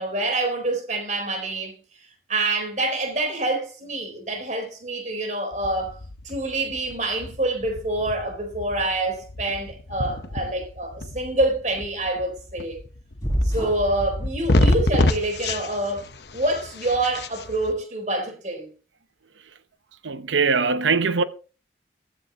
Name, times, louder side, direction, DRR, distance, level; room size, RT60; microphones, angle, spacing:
voice 1, 0.0-1.8 2.3-6.0 6.2-12.8 13.4-16.1 16.3-18.7, right 2 dB, 40° right, 4.0 m, -26 dB
sound 1, 5.5-17.7, left 1 dB, 65° left, 1.0 m, -28 dB
sound 2, 13.2-13.9 14.5-15.4, equal, 15° left, 7.0 m, -28 dB
voice 2, 20.0-21.2, right 4 dB, 90° right, 0.8 m, -21 dB
15.5 x 14.0 x 2.9 m
head